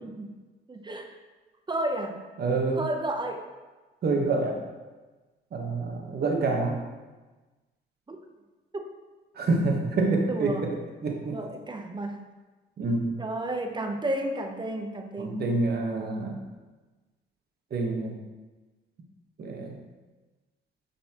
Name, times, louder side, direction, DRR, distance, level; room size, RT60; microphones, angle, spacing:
voice 1, 0.0-0.4 0.7-1.2 1.7-2.2 2.8-3.4 8.1-8.2 8.7-8.9 10.3-10.7 11.3-12.3 13.2-15.4, right 1 dB, 20° right, 4 dB, 0.7 m, -32 dB
voice 2, 2.4-2.8 4.0-4.6 5.5-6.8 9.4-10.7 11.0-11.4 12.8-13.2 15.2-16.4 17.7-18.2 19.4-19.7, right 3 dB, 55° right, 1 dB, 1.2 m, -27 dB
9.3 x 4.2 x 2.9 m, 1.2 s
cardioid pair, 90°, 20 cm